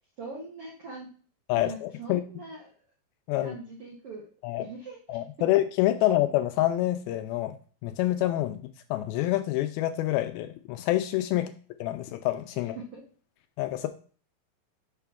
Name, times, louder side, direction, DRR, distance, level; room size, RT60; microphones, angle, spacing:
voice 1, 0.2-1.1 1.5-2.7 3.3-4.3 4.6-5.2 11.3-11.5 12.5-13.0, right 3 dB, 80° right, -2 dB, 1.3 m, -42 dB
voice 2, 1.5-2.2 3.3-3.6 4.4-4.7 5.1-7.6 7.8-8.6 8.9-11.5 11.8-12.8 13.6-13.9, left 14 dB, 80° left, 9 dB, 2.2 m, -27 dB
6.8 x 5.6 x 3.6 m, 0.41 s
omnidirectional pair, 4.6 m